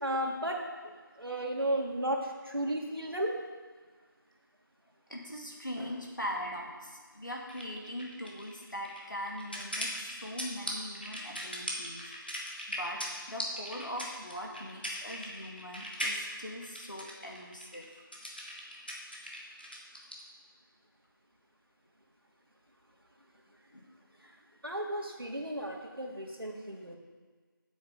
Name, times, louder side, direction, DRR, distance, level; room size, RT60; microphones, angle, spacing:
voice 1, 0.0-0.6 1.2-3.3 24.2-24.3 24.6-27.0, right 1 dB, 80° right, 0 dB, 2.1 m, -34 dB
voice 2, 5.1-13.0 13.3-17.8 23.7-23.8, equal, 60° left, -1 dB, 2.2 m, -41 dB
sound 1, 7.5-20.2, equal, 25° left, 1.0 m, -39 dB
9.7 x 7.7 x 5.0 m, 1.5 s
figure-of-eight pair, 180°, 12 cm